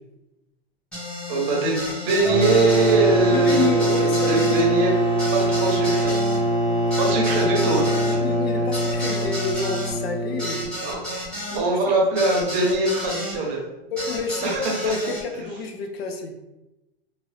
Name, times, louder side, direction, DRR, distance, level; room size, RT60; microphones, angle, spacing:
sound 1, 0.9-13.4 14.0-15.2, left 1 dB, 5° left, 1.0 m, -32 dB
voice 1, 1.3-4.9 5.3-6.1 7.0-8.2 10.8-11.0 11.5-13.6 14.4-14.7, right 3 dB, 25° right, -1 dB, 0.8 m, -22 dB
sound 2, 2.2-10.7, right 1 dB, 70° left, 1.5 m, -23 dB
voice 2, 3.1-4.9 6.9-7.0 8.0-10.7 11.5-12.0 13.9-16.3, left 4 dB, 85° left, 4 dB, 0.7 m, -30 dB
2.9 x 2.6 x 3.1 m, 0.97 s
supercardioid pair, 150°, 30 cm